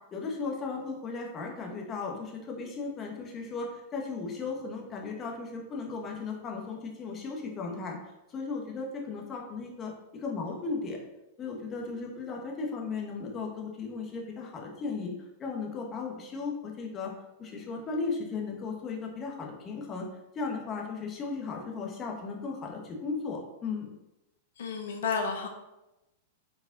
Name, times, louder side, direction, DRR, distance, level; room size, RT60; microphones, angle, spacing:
voice 1, 0.1-8.0 8.3-11.0 11.4-15.1 15.4-17.1 17.4-20.1 20.3-23.9, left 4 dB, 25° left, 0 dB, 1.5 m, -36 dB
voice 2, 24.6-25.5, left 5 dB, 80° left, 5 dB, 0.8 m, -31 dB
5.4 x 4.8 x 4.0 m, 0.96 s
hypercardioid pair, 130°, 0 cm